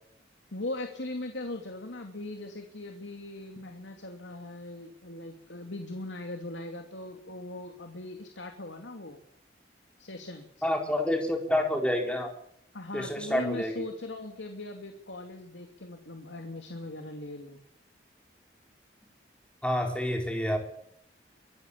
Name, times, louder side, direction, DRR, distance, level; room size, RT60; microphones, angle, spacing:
voice 1, 0.5-9.2 10.0-10.4 12.7-17.6, left 2 dB, 90° left, 5 dB, 2.6 m, -39 dB
voice 2, 10.6-12.3 12.9-13.7 19.6-20.6, left 1 dB, 5° left, 2 dB, 4.2 m, -28 dB
24.0 x 15.0 x 8.6 m, 0.69 s
head